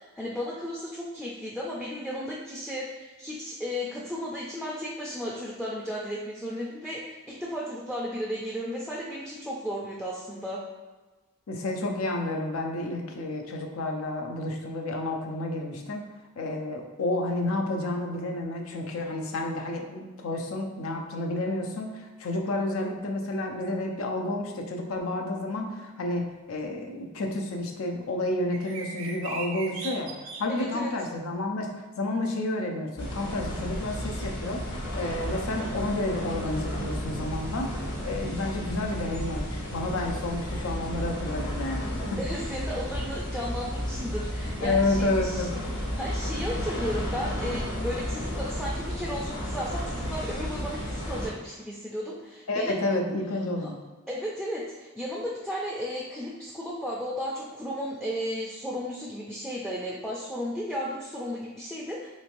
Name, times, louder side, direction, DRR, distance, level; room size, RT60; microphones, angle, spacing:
voice 1, 0.0-10.6 30.5-30.9 42.2-45.4 45.7-52.8 53.6-53.7 54.1-62.1, equal, ahead, -5 dB, 0.3 m, -34 dB
voice 2, 11.5-16.0 16.4-42.2 44.6-45.7 52.5-53.7, left 2 dB, 90° left, 2 dB, 0.5 m, -30 dB
sound 1, 28.5-30.4, right 5 dB, 70° right, 0.5 m, -38 dB
sound 2, 33.0-51.3, equal, 55° left, 1.0 m, -33 dB
3.2 x 3.1 x 2.5 m, 1.2 s
head